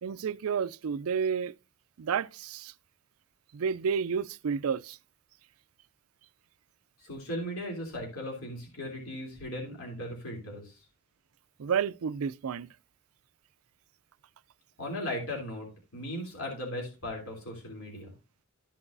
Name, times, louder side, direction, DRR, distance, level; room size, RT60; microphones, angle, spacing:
voice 1, 0.0-1.5 2.0-2.7 3.5-5.0 11.6-12.7, right 6 dB, 80° right, 0.4 m, -30 dB
voice 2, 7.0-10.8 14.8-18.1, left 1 dB, 75° left, 3.2 m, -37 dB
13.5 x 6.0 x 2.6 m
head